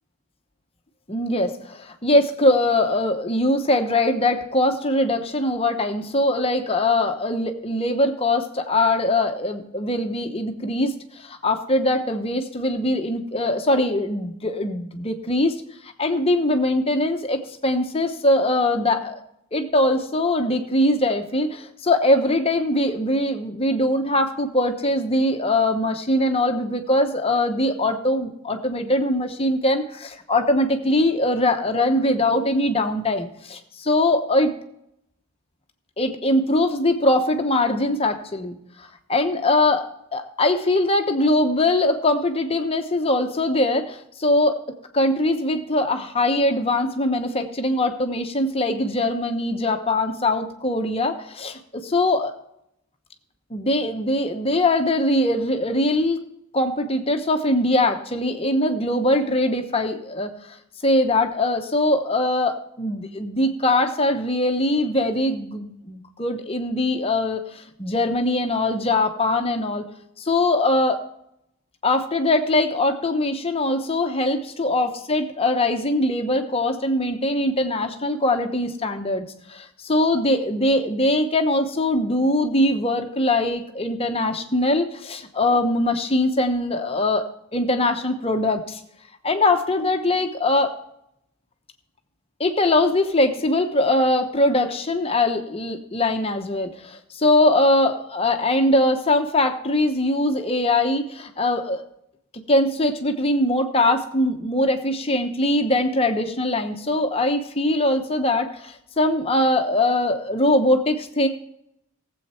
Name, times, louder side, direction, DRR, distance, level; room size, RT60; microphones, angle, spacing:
voice 1, 1.1-19.2 19.5-34.5 36.0-39.8 40.1-44.6 44.9-52.3 53.5-56.2 56.5-60.6 60.8-69.8 70.2-71.0 71.8-79.2 79.5-87.2 87.5-88.8 89.2-90.7 92.4-101.8 102.5-111.3, left 1 dB, 25° left, 6 dB, 1.0 m, -22 dB
17.0 x 8.0 x 4.3 m, 0.78 s
head